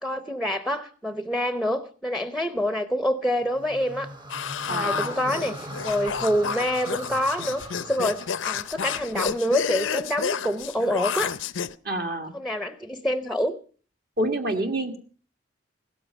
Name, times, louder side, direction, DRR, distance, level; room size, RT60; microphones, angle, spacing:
voice 1, 0.0-4.1 4.6-11.3 12.3-13.6, equal, ahead, 11 dB, 0.6 m, -27 dB
sound 1, 3.4-9.7, right 1 dB, 25° right, 1.0 m, -41 dB
sound 2, 4.3-11.7, left 6 dB, 90° left, 0.6 m, -30 dB
voice 2, 4.7-5.2 11.8-12.3 14.2-15.0, right 1 dB, 50° right, 5 dB, 1.6 m, -27 dB
16.5 x 13.5 x 5.4 m, 0.41 s
head